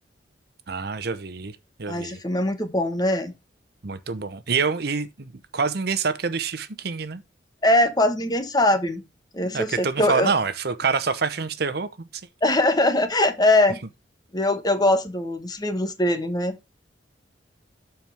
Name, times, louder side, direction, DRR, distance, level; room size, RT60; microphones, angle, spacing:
voice 1, 0.7-1.5 1.8-2.2 3.8-7.2 9.5-12.1, right 5 dB, 60° right, 0.8 m, -26 dB
voice 2, 1.9-3.3 7.6-9.0 9.3-10.3 12.4-13.8 14.3-16.6, left 1 dB, 20° left, 1.1 m, -22 dB
13.0 x 4.5 x 3.4 m
head